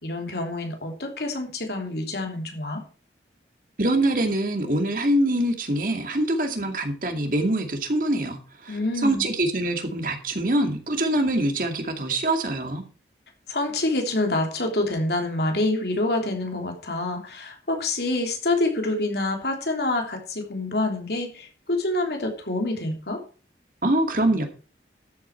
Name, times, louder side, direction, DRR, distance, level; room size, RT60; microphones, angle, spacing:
voice 1, 0.0-2.8 8.7-9.2 13.5-23.2, left 2 dB, 65° left, 3 dB, 3.3 m, -27 dB
voice 2, 3.8-12.8 23.8-24.4, right 1 dB, 50° right, 5 dB, 2.2 m, -24 dB
13.0 x 8.6 x 4.6 m, 0.37 s
head